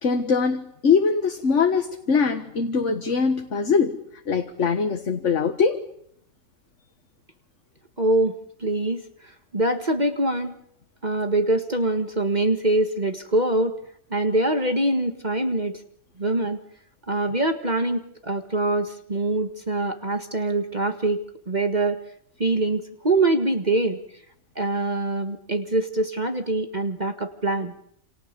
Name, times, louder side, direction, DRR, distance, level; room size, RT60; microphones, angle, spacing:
voice 1, 0.0-4.0 4.3-5.8, left 5 dB, 60° left, 1.8 m, -22 dB
voice 2, 8.0-8.3 8.6-10.5 11.0-13.8 14.1-15.8 16.2-16.6 17.1-21.2 21.5-22.0 22.4-24.0 24.6-27.7, right 2 dB, 30° right, 1.8 m, -24 dB
28.5 x 28.0 x 6.9 m
omnidirectional pair, 1.5 m